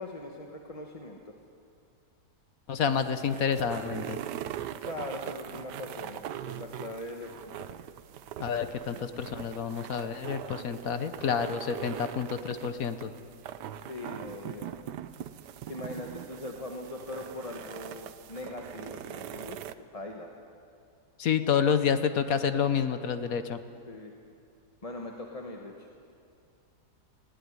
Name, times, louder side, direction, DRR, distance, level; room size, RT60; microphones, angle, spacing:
voice 1, 0.0-1.3 4.8-7.7 13.9-14.7 15.7-19.6 19.9-20.4 23.9-24.1 24.8-25.9, left 2 dB, 25° left, 1 dB, 1.2 m, -41 dB
voice 2, 2.7-4.2 8.4-13.1 21.2-23.6, left 7 dB, 60° left, 10 dB, 1.3 m, -29 dB
sound 1, 2.7-19.7, right 10 dB, 80° right, 1.3 m, -41 dB
20.0 x 16.5 x 9.6 m, 2.4 s
omnidirectional pair, 1.8 m